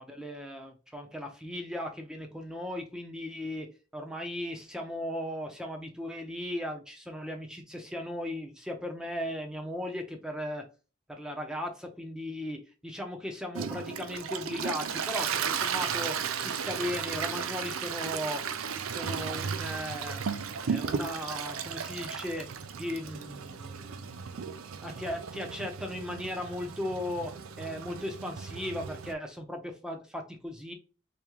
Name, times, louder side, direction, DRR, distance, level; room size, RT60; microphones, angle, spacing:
voice 1, 0.0-10.6 11.1-18.4 18.9-20.2 20.6-22.5 22.8-24.3 24.8-30.7, left 1 dB, 5° right, 3 dB, 0.6 m, -37 dB
Toilet flush, 13.5-29.1, right 6 dB, 85° right, 0.5 m, -35 dB
3.6 x 3.4 x 3.0 m, 0.33 s
head